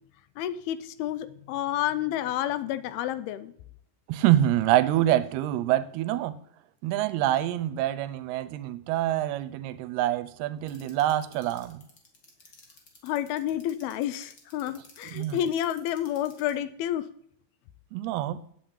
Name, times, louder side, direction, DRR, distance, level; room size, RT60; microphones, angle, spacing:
voice 1, 0.4-3.5 13.0-17.1, left 11 dB, 80° left, 2.6 m, -30 dB
voice 2, 4.1-6.4 6.8-11.8 15.0-15.4 17.9-18.4, right 13 dB, 90° right, 2.7 m, -26 dB
sound 1, 10.7-16.5, left 5 dB, 35° left, 2.3 m, -53 dB
9.1 x 7.7 x 8.7 m
omnidirectional pair, 4.5 m